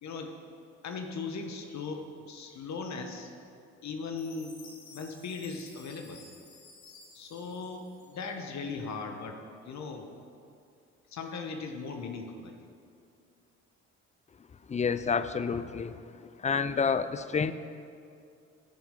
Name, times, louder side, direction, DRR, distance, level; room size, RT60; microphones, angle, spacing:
voice 1, 0.0-0.3 0.8-3.3 3.8-4.6 4.9-6.2 7.1-9.4 9.7-10.1 11.1-12.6, left 4 dB, 50° left, 4 dB, 1.2 m, -38 dB
Chime, 4.2-8.5, left 4 dB, 85° left, 1.6 m, -54 dB
voice 2, 14.7-16.0 16.4-17.5, left 6 dB, 20° left, 13 dB, 0.4 m, -29 dB
13.5 x 7.1 x 3.8 m, 2.5 s
hypercardioid pair, 55°, 34 cm